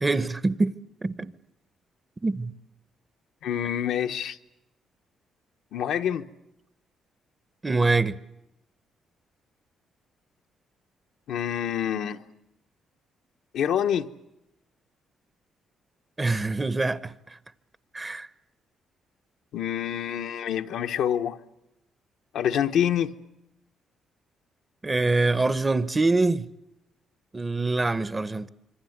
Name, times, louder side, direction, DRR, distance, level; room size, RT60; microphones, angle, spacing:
voice 1, 0.0-0.7 1.0-1.3 2.2-2.5 7.6-8.2 16.2-17.1 17.9-18.3 24.8-26.5 27.3-28.5, right 3 dB, 20° right, 0.9 m, -24 dB
voice 2, 3.4-4.4 5.7-6.3 11.3-12.2 13.5-14.1 19.5-21.4 22.3-23.1, left 9 dB, 80° left, 1.0 m, -26 dB
26.0 x 23.5 x 8.0 m
cardioid pair, 90°, 0 cm